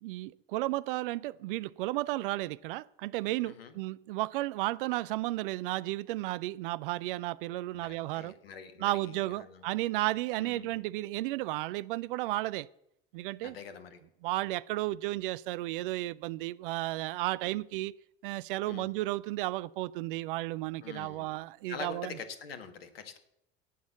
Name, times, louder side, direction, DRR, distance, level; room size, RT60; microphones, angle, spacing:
voice 1, 0.0-8.3 8.8-12.7 13.1-13.6 14.2-17.9 18.2-22.2, right 18 dB, 60° right, 0.5 m, -33 dB
voice 2, 3.4-3.7 7.7-9.6 10.4-10.8 13.4-14.0 18.6-18.9 20.8-21.3 21.7-23.2, left 6 dB, 70° left, 1.5 m, -45 dB
17.5 x 6.3 x 7.1 m
figure-of-eight pair, 60°, 30 cm